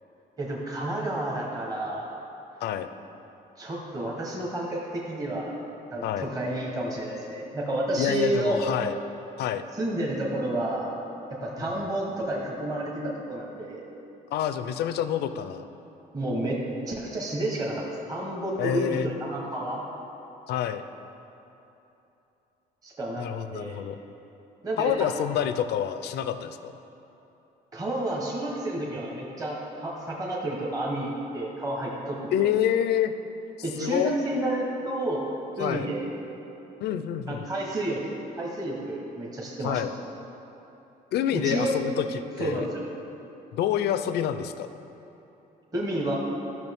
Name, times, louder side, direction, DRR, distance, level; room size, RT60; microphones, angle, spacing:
voice 1, 0.4-2.1 3.6-5.5 5.9-8.7 9.8-10.9 11.3-13.8 16.1-19.8 22.8-23.3 23.5-23.8 24.6-25.1 27.7-32.5 33.6-35.2 35.6-36.0 37.3-38.0 38.4-39.8 41.3-41.8 42.4-42.8 45.7-46.2, right 1 dB, 20° right, -3 dB, 1.0 m, -30 dB
voice 2, 8.0-8.9 9.4-9.6 14.3-15.6 18.6-19.1 20.5-20.8 23.2-24.0 24.8-26.7 32.3-33.1 33.8-34.1 35.6-35.9 36.8-37.5 39.6-39.9 41.1-42.1 42.4-42.7 43.5-44.7, left 10 dB, 80° left, 10 dB, 0.5 m, -27 dB
13.5 x 6.1 x 3.6 m, 3.0 s
cardioid pair, 160°, 17 cm